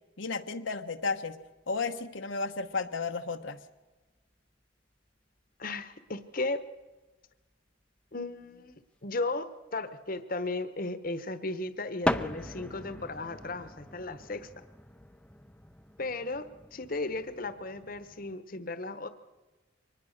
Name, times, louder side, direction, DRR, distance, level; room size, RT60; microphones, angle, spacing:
voice 1, 0.2-1.4 1.7-3.6, left 4 dB, 75° left, 6 dB, 1.1 m, -33 dB
sound 1, 1.0-1.8 2.0-2.4 3.5-3.6 3.8-3.9 4.3-4.4 5.4-5.5 5.7-5.8 6.5-6.6 6.8-6.9 7.1-7.2 8.4-9.2 12.0-18.4, left 1 dB, 5° left, 0.7 m, -38 dB
voice 2, 5.6-6.7 8.1-14.5 16.0-19.1, left 2 dB, 45° left, 12 dB, 1.2 m, -35 dB
24.0 x 20.0 x 6.6 m, 1.2 s
head